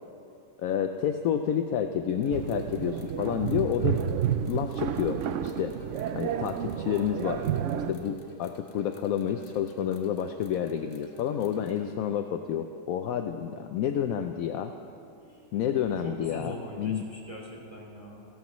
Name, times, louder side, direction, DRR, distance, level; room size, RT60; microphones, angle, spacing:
voice 1, 0.6-4.0 4.5-5.7 6.1-14.7 15.5-17.0, left 9 dB, 70° left, 7 dB, 0.9 m, -29 dB
sound 1, 2.0-11.9, right 1 dB, 35° left, 1.3 m, -49 dB
sound 2, 2.3-7.9, right 9 dB, 85° right, 0.6 m, -31 dB
voice 2, 15.2-15.6 16.0-18.3, left 1 dB, 20° left, -2 dB, 2.7 m, -42 dB
27.5 x 13.5 x 3.1 m, 2.7 s
omnidirectional pair, 1.9 m